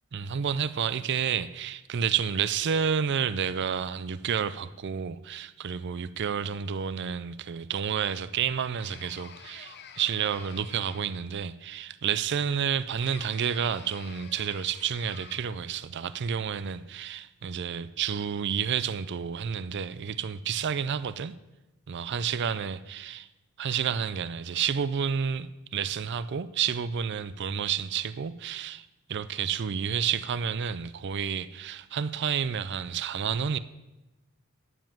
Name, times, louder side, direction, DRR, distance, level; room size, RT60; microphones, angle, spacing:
voice 1, 0.1-21.3 21.9-23.3 23.6-33.6, right 7 dB, 55° right, 0.4 m, -30 dB
sound 1, 8.8-11.3 13.0-15.6, left 6 dB, 55° left, 0.7 m, -49 dB
10.0 x 7.2 x 7.4 m
head